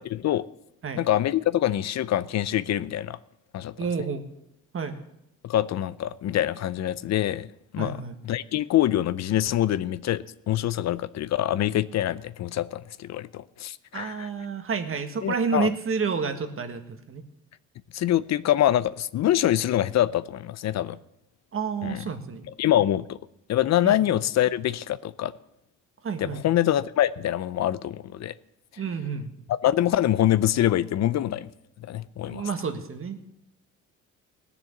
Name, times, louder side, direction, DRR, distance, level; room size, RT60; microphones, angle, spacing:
voice 1, 0.1-0.4 1.0-3.2 3.5-3.7 5.4-7.5 7.7-14.3 15.2-15.7 17.9-21.0 21.8-22.0 22.6-23.2 23.5-25.3 26.2-28.3 29.6-31.5 31.8-32.4, left 12 dB, 60° left, 0.6 m, -25 dB
voice 2, 3.8-4.3 4.7-5.0 7.8-8.2 13.9-17.2 21.5-22.4 23.8-24.0 26.0-26.5 28.8-29.3 32.2-33.2, right 5 dB, 45° right, 1.6 m, -30 dB
18.0 x 7.0 x 7.1 m
cardioid pair, 90°, 30 cm